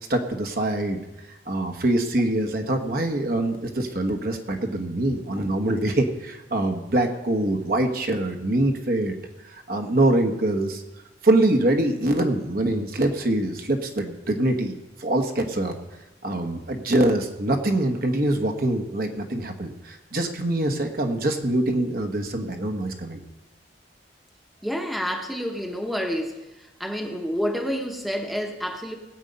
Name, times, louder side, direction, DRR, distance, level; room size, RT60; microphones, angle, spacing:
voice 1, 0.1-1.0 1.5-9.2 9.5-10.8 11.2-15.8 16.2-23.2, right 1 dB, 55° right, 4 dB, 1.3 m, -24 dB
voice 2, 24.6-26.4 26.8-29.0, equal, ahead, 3 dB, 1.0 m, -28 dB
18.0 x 8.1 x 5.4 m, 1.0 s
head